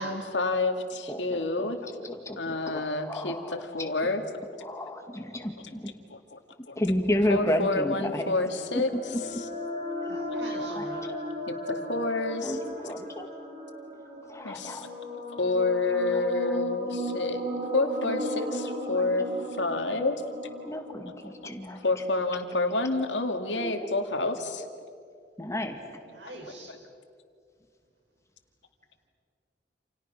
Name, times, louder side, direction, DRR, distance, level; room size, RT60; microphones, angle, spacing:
voice 1, 0.0-1.8 2.3-4.2 6.1-6.4 6.7-6.8 7.3-8.9 11.5-12.4 14.4-14.9 15.3-17.4 17.7-19.3 19.6-20.2 20.7-20.8 21.2-21.3 21.8-24.7, left 2 dB, 90° left, 6 dB, 2.3 m, -29 dB
voice 2, 1.1-1.7 2.0-3.9 4.6-5.9 6.8-8.4 8.8-8.9 10.0-10.2 10.7-11.2 12.4-12.6 12.8-13.3 14.3-14.9 19.0-19.1 20.6-21.8 23.5-23.9 25.4-25.8, left 1 dB, 15° left, 5 dB, 2.2 m, -32 dB
sound 1, 8.5-22.1, left 1 dB, 45° right, 3.7 m, -35 dB
voice 3, 9.9-11.1 26.1-26.8, right 1 dB, 80° right, 1 dB, 6.5 m, -41 dB
29.0 x 28.5 x 6.1 m, 2.4 s
head